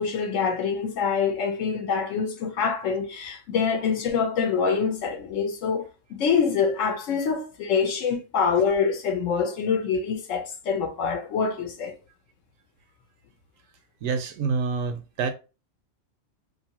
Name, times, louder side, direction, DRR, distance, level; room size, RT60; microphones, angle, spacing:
voice 1, 0.0-11.9, left 6 dB, 70° left, 1.0 m, -25 dB
voice 2, 14.0-15.3, right 5 dB, 75° right, 0.9 m, -27 dB
2.6 x 2.6 x 2.8 m
omnidirectional pair, 1.4 m